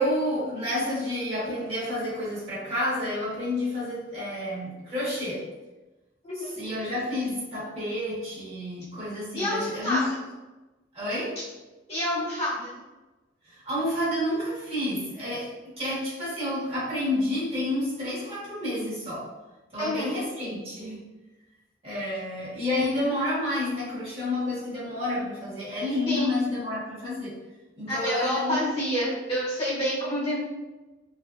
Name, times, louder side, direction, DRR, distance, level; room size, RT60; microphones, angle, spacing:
voice 1, 0.0-5.5 6.3-10.1 10.9-11.4 13.5-19.3 19.7-21.0 21.8-27.4 27.8-28.6, left 1 dB, 35° right, -8 dB, 1.2 m, -29 dB
voice 2, 6.2-6.6 9.3-10.0 11.9-12.7 19.8-20.2 26.1-26.3 27.9-30.4, equal, 35° left, -8 dB, 1.2 m, -28 dB
3.2 x 2.6 x 2.4 m, 1.1 s
head